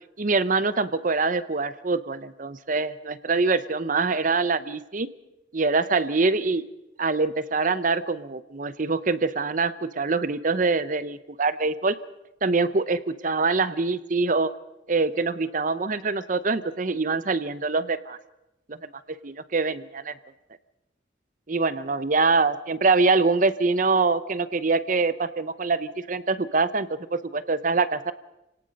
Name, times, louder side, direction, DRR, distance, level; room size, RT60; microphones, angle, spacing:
voice 1, 0.2-5.1 5.5-6.6 7.0-11.9 12.4-14.5 14.9-18.2 18.7-18.8 19.2-20.1 21.5-28.1, right 3 dB, 45° right, 15 dB, 0.7 m, -24 dB
29.5 x 18.0 x 5.3 m, 0.91 s
head